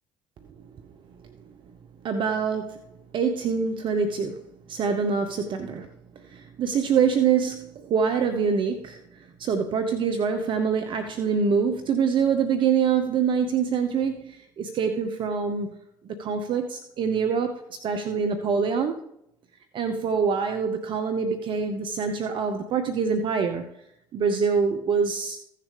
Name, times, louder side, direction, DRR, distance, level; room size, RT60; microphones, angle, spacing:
voice 1, 2.0-2.8 3.1-5.9 6.2-15.7 16.0-19.0 19.7-23.7 24.1-25.4, right 6 dB, 50° right, 7 dB, 0.9 m, -25 dB
15.5 x 6.7 x 3.4 m, 0.76 s
hypercardioid pair, 60°, 10 cm